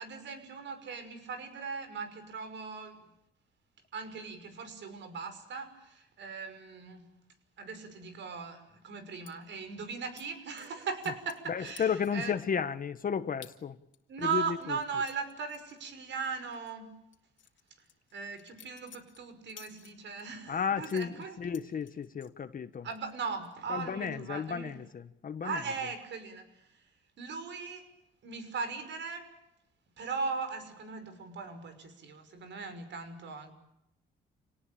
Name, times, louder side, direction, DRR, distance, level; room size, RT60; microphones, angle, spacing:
voice 1, 0.0-3.1 3.9-7.1 7.6-12.4 14.1-17.0 18.1-21.4 22.8-24.8 25.4-26.8 27.2-27.9 28.2-29.4 30.0-33.5, right 5 dB, 65° right, 5.9 m, -38 dB
sound 1, 9.3-9.4 10.2-10.3 10.6-11.5 11.8-12.3 12.7-12.8 13.4-13.6 13.9-16.3 16.5-16.7 17.1-20.3 20.8-22.3 22.7-23.2 23.4-23.8, left 10 dB, 70° left, 2.9 m, -55 dB
voice 2, 11.5-13.8 14.2-14.8 20.5-22.9 23.7-25.6, left 7 dB, 45° left, 1.4 m, -33 dB
29.0 x 19.0 x 8.7 m
cardioid pair, 90°, 20 cm